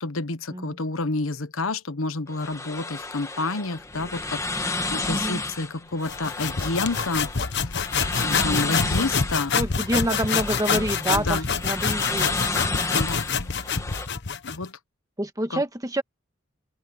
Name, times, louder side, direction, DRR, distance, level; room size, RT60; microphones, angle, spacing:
voice 1, 0.0-7.3 7.6-7.9 8.2-9.5 11.1-11.5 12.9-13.3 14.4-14.8 15.5-15.6, left 3 dB, 85° left, 1.1 m, -29 dB
sound 1, 2.3-14.1, left 3 dB, 15° left, 1.6 m, -32 dB
voice 2, 5.0-5.4 8.3-8.8 9.5-12.3 15.2-16.0, right 1 dB, 15° right, 1.5 m, -27 dB
sound 2, 6.0-14.7, left 6 dB, 60° left, 1.2 m, -26 dB
open air
head